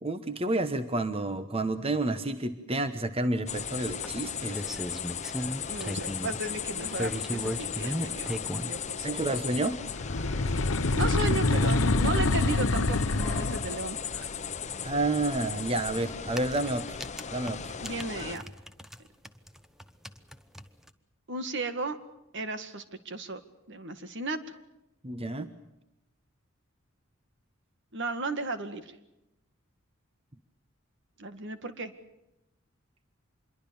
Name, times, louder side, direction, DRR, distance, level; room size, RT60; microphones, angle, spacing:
voice 1, 0.0-4.6 9.0-9.8 14.8-17.0 17.3-17.8 25.0-25.5, right 2 dB, 30° right, 10 dB, 1.1 m, -30 dB
sound 1, 3.5-18.4, left 7 dB, 35° left, 1.0 m, -37 dB
sound 2, 4.0-6.4 6.8-8.7 9.6-9.7 10.2-10.3 10.5-10.6 10.8-10.9 12.9-13.0 13.2-13.3 15.3-15.5 16.1-19.0 19.2-20.9, equal, ahead, 1.1 m, -36 dB
voice 2, 5.7-9.1 10.9-14.3 17.8-18.4 21.3-22.0 22.3-23.4 23.7-24.4 27.9-28.9 31.2-31.9, right 3 dB, 60° right, 10 dB, 2.0 m, -35 dB
sound 3, 9.9-13.8, left 2 dB, 70° left, 0.9 m, -26 dB
26.0 x 22.5 x 7.1 m, 0.90 s
head